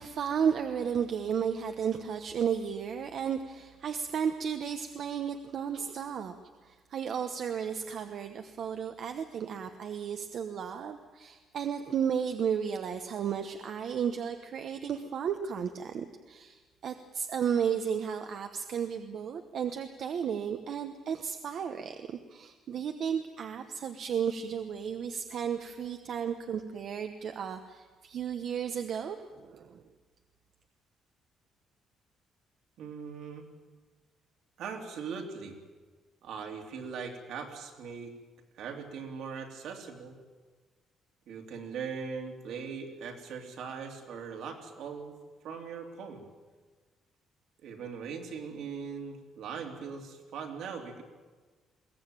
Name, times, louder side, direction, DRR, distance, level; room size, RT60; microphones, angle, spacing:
voice 1, 0.0-6.3 6.6-29.8, right 7 dB, 45° right, 7 dB, 1.0 m, -33 dB
voice 2, 32.8-33.5 34.6-35.6 36.2-38.1 38.6-40.2 41.3-45.2 45.4-46.2 47.6-51.0, right 6 dB, 65° right, 3 dB, 3.1 m, -40 dB
22.0 x 17.5 x 9.0 m, 1.4 s
cardioid pair, 175°, 0 cm